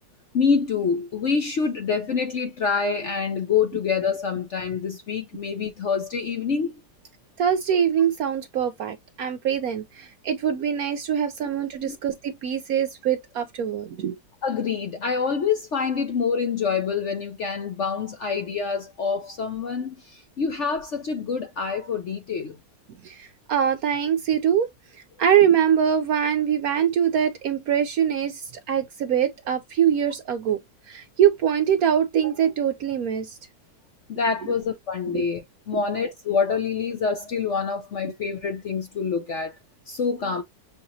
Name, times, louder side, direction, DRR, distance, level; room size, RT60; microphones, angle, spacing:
voice 1, 0.3-6.7 11.8-12.0 14.4-22.6 34.1-39.5 39.9-40.4, left 5 dB, 55° left, 0.8 m, -26 dB
voice 2, 7.4-14.2 23.0-24.7 25.2-30.6 30.9-33.4 34.4-34.5 35.1-35.2 38.0-38.1, right 9 dB, 70° right, 0.9 m, -23 dB
6.4 x 2.9 x 2.7 m
omnidirectional pair, 2.0 m